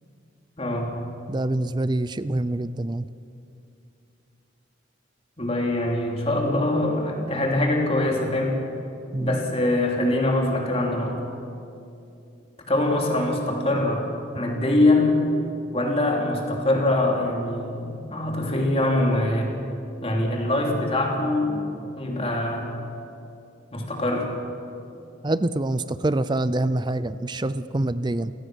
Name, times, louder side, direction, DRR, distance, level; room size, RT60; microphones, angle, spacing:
voice 1, 0.6-0.9 5.4-8.6 9.2-11.2 12.7-14.1 14.3-15.3 15.7-19.5 20.0-22.7 23.7-24.3, left 1 dB, 30° left, 0 dB, 3.1 m, -23 dB
voice 2, 1.3-3.1 9.1-9.4 25.2-28.3, right 2 dB, 20° right, 15 dB, 0.4 m, -25 dB
27.5 x 17.5 x 6.4 m, 2.7 s
head